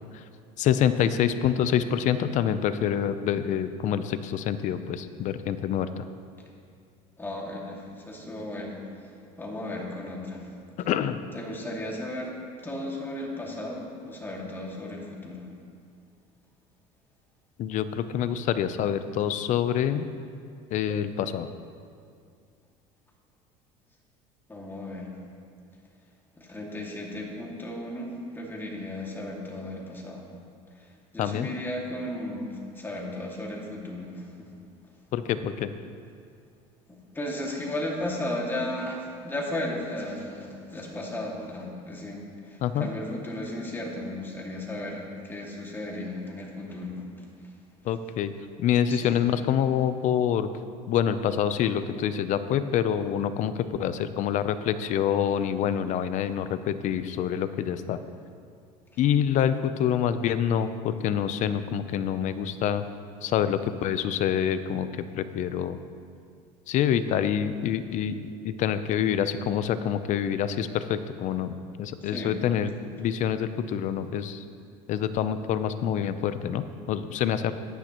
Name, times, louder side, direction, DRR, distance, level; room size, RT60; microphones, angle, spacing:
voice 1, 0.6-6.0 10.8-11.2 17.6-20.1 20.7-21.5 31.2-31.5 35.1-35.7 42.6-42.9 47.8-48.3 48.6-50.5 50.9-53.5 53.8-58.0 59.0-62.8 63.2-64.9 65.1-65.8 66.7-68.1 68.4-72.7 73.0-74.4 74.9-77.5, left 9 dB, 55° left, 12 dB, 0.6 m, -26 dB
voice 2, 7.2-9.1 9.4-10.5 11.3-12.4 12.6-15.5 24.5-25.1 26.4-30.3 30.7-34.5 36.9-47.3 48.9-49.2 72.0-72.4, left 1 dB, 15° left, -2 dB, 2.2 m, -35 dB
14.5 x 10.5 x 3.0 m, 2.3 s
supercardioid pair, 115°, 15 cm